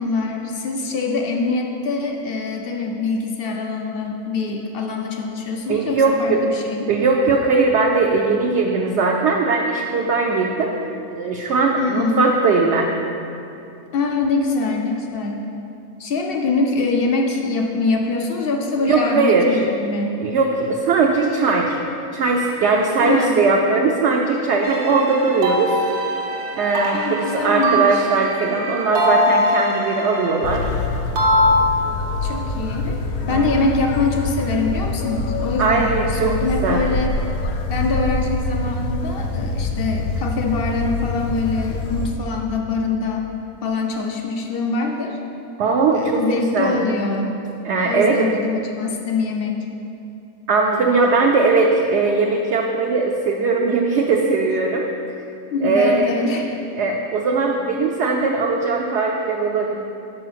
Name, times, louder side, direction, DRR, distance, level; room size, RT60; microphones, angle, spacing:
voice 1, 0.0-6.8 11.8-12.3 13.9-15.5 16.0-20.1 23.0-23.4 26.9-28.0 32.2-33.0 33.3-37.2 37.7-43.2 43.6-45.2 45.9-47.4 47.8-49.6 55.5-56.6, left 3 dB, 65° left, 2 dB, 0.5 m, -24 dB
voice 2, 5.7-6.4 6.9-12.9 18.8-19.6 20.2-21.8 22.1-25.8 26.6-30.7 33.3-33.4 35.6-36.3 36.6-36.8 45.6-46.8 47.6-48.3 50.5-54.8 55.6-56.0 56.8-59.8, right 4 dB, 65° right, 0 dB, 0.7 m, -19 dB
sound 1, 24.6-30.9 31.2-32.4, equal, 90° right, 1.5 m, -22 dB
sound 2, 30.4-42.1, left 3 dB, 85° left, 1.1 m, -25 dB
6.8 x 4.6 x 5.8 m, 2.7 s
omnidirectional pair, 1.6 m